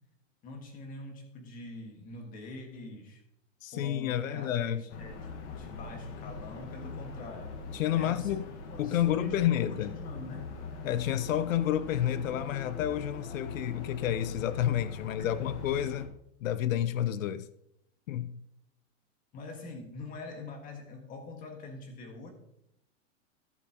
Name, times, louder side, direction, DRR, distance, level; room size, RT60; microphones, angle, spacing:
voice 1, 0.4-3.2 3.7-7.6 8.0-8.4 8.7-10.5 15.2-15.3 19.3-22.3, left 2 dB, 20° left, 1.7 m, -44 dB
voice 2, 3.6-4.8 7.7-8.4 8.8-9.9 10.8-16.1 16.4-17.5 18.1-18.4, left 11 dB, 85° left, 0.7 m, -30 dB
sound 1, 4.9-16.1, left 4 dB, 60° left, 1.6 m, -42 dB
15.0 x 7.3 x 2.9 m
supercardioid pair, 165°, 39 cm